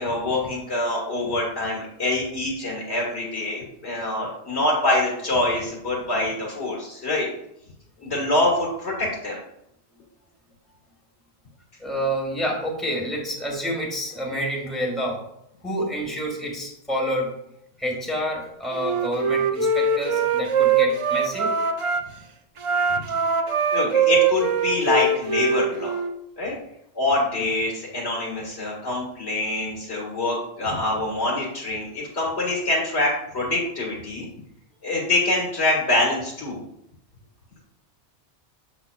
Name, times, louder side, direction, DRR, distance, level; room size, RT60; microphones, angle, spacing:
voice 1, 0.0-7.3 8.0-9.4 22.9-23.0 23.7-26.0 26.4-26.6 27.0-34.3 34.8-36.6, left 2 dB, 75° left, -4 dB, 2.0 m, -25 dB
voice 2, 11.8-15.2 15.6-17.3 17.8-21.5, equal, ahead, -1 dB, 1.3 m, -28 dB
Wind instrument woodwind instrument, 18.7-22.0 22.6-26.1, right 5 dB, 55° right, 0.3 m, -22 dB
7.4 x 6.9 x 2.3 m, 0.77 s
omnidirectional pair, 1.1 m